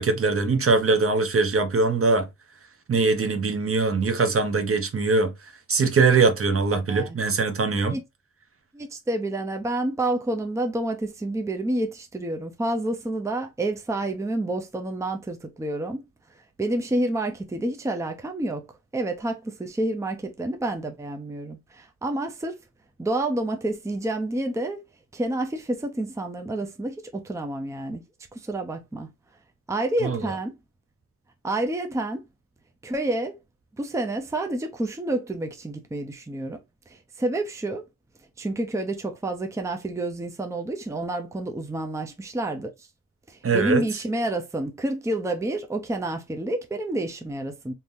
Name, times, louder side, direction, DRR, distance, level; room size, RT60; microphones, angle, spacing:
voice 1, 0.0-2.3 2.9-5.3 5.7-8.0 30.0-30.2 43.4-43.8, right 4 dB, 45° right, 0.8 m, -22 dB
voice 2, 6.7-7.2 7.9-8.0 8.7-16.0 16.6-18.6 18.9-22.6 23.0-24.8 25.1-28.0 28.3-29.1 29.7-30.6 31.4-32.2 32.8-33.4 33.8-36.6 36.9-37.8 38.4-42.9 43.3-47.7, right 1 dB, 10° right, 0.6 m, -29 dB
3.6 x 2.8 x 2.5 m
wide cardioid pair, 125°, 30 cm